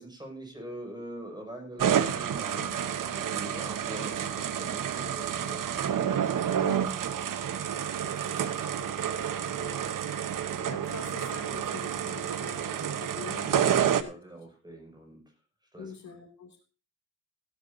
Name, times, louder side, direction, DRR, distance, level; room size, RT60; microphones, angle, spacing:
voice 1, 0.0-5.8 12.7-13.1 13.5-15.2 15.7-16.2, right 1 dB, 15° right, 2 dB, 6.5 m, -44 dB
sound 1, 1.8-14.0, right 9 dB, 80° right, 1.1 m, -29 dB
voice 2, 6.6-7.0 8.0-8.5 8.8-9.2 9.4-9.9 10.3-14.1 15.8-16.6, left 5 dB, 60° left, 4 dB, 2.8 m, -45 dB
15.5 x 12.5 x 2.7 m, 0.35 s
wide cardioid pair, 115°, 32 cm